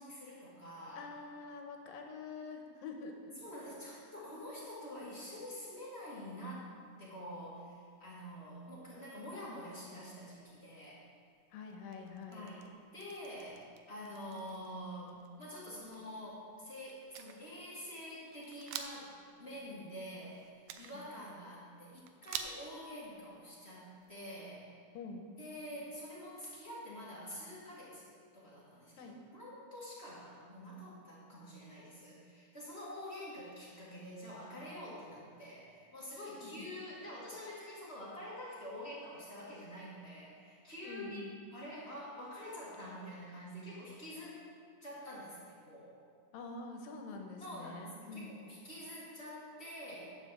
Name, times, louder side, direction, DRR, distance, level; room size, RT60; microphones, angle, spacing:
voice 1, 0.0-1.1 3.4-6.7 7.0-11.0 12.3-19.1 19.4-24.6 25.4-29.0 29.3-41.2 41.5-44.4 44.8-46.1 47.4-50.2, equal, 25° left, -7 dB, 1.6 m, -47 dB
voice 2, 1.0-3.3 3.8-4.0 11.5-12.5 20.9-21.1 24.9-25.3 29.0-29.2 36.3-36.7 40.8-41.4 46.3-48.3, left 4 dB, 85° left, 3 dB, 2.6 m, -46 dB
sound 1, 5.1-24.3, right 8 dB, 80° right, 2.2 m, -52 dB
10.5 x 5.3 x 7.4 m, 2.1 s
omnidirectional pair, 4.0 m